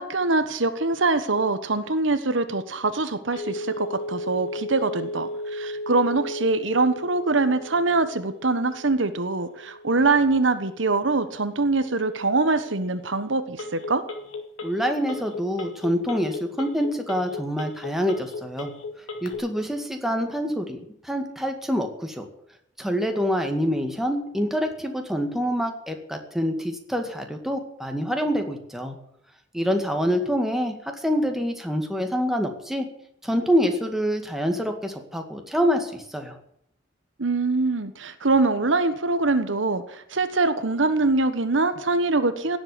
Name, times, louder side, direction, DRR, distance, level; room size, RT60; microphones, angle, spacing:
voice 1, 0.0-14.0 37.2-42.6, right 3 dB, 75° right, 11 dB, 1.3 m, -23 dB
Telephone, 3.3-19.3, left 1 dB, 90° left, 2.5 m, -36 dB
voice 2, 14.6-18.7 19.2-20.8 21.0-22.3 22.8-29.0 29.5-30.7 31.0-32.9 33.2-36.4, equal, ahead, 4 dB, 2.0 m, -26 dB
17.0 x 8.0 x 9.9 m, 0.70 s
head